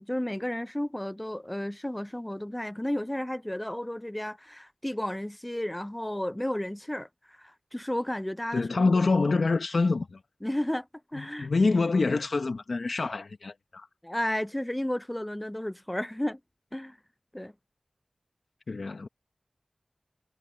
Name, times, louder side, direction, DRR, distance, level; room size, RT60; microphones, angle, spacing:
voice 1, 0.0-8.6 10.4-10.9 11.1-11.5 14.0-16.4 16.7-17.0 17.3-17.5, left 1 dB, 15° left, 0.4 m, -32 dB
voice 2, 8.5-10.2 11.1-13.9 18.7-19.1, left 3 dB, 75° left, 0.8 m, -26 dB
wide cardioid pair, 75°, 0 cm